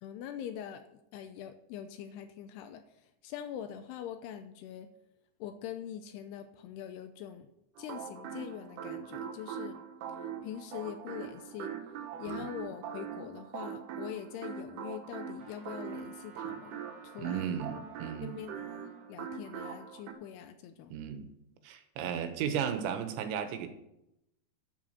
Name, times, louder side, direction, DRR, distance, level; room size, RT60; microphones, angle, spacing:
voice 1, 0.0-4.9 5.4-7.5 7.8-9.8 10.4-11.7 12.2-17.5 18.2-21.0, left 10 dB, 80° left, 9 dB, 2.5 m, -43 dB
sound 1, 7.8-20.1, right 7 dB, 70° right, 2.9 m, -42 dB
Trumpet, 15.4-19.1, right 3 dB, 25° right, 4.0 m, -56 dB
voice 2, 17.2-18.4 20.9-21.3 21.6-23.7, right 8 dB, 90° right, 8 dB, 3.4 m, -35 dB
10.5 x 7.6 x 6.4 m, 0.84 s
omnidirectional pair, 5.1 m